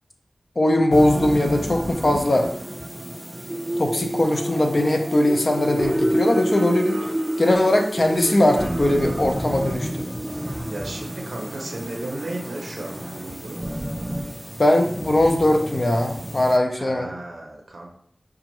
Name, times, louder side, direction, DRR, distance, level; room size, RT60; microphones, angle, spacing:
voice 1, 0.6-2.5 3.8-7.0 7.4-10.0 14.6-17.1, left 1 dB, 50° left, 3 dB, 0.6 m, -20 dB
sound 1, 0.9-16.6, right 1 dB, 15° right, 0.4 m, -29 dB
voice 2, 10.6-13.7 16.8-17.9, right 2 dB, 80° right, 0 dB, 0.5 m, -34 dB
5.1 x 2.4 x 2.9 m, 0.68 s
wide cardioid pair, 70°, 0 cm